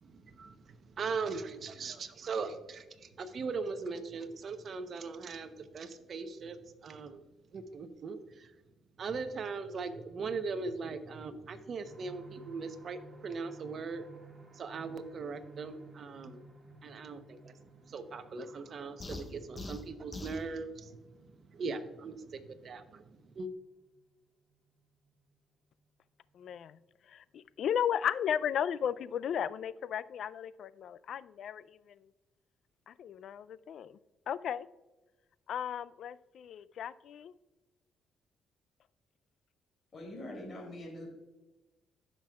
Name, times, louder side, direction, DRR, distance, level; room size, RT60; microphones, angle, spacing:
voice 1, 0.0-7.2 7.5-8.5 9.0-14.1 14.5-16.4 16.8-17.5 17.8-23.5, right 4 dB, 55° right, 9 dB, 0.8 m, -40 dB
sound 1, 11.9-25.3 25.8-25.9 26.3-26.4, right 2 dB, 30° right, 2.1 m, -57 dB
sound 2, 19.0-20.5, left 2 dB, 25° left, 0.8 m, -43 dB
voice 2, 26.3-26.8 27.1-32.0 32.9-34.0 34.3-34.7 35.5-37.3, left 9 dB, 70° left, 17 dB, 0.3 m, -35 dB
voice 3, 39.9-41.1, left 1 dB, 45° left, -2 dB, 3.0 m, -43 dB
15.0 x 6.1 x 2.3 m, 1.1 s
cardioid pair, 90°, 0 cm